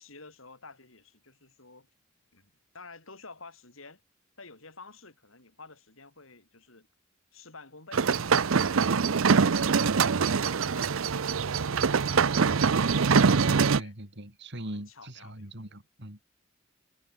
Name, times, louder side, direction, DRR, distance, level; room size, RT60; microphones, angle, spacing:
voice 1, 0.0-1.9 2.3-4.0 4.4-6.9 7.3-8.1 8.4-8.5 9.0-12.4 13.7-14.0 14.6-15.6, left 3 dB, 75° left, 5.9 m, -51 dB
sound 1, 7.9-13.8, right 5 dB, 75° right, 0.7 m, -24 dB
voice 2, 13.2-16.2, right 1 dB, 60° right, 5.4 m, -40 dB
head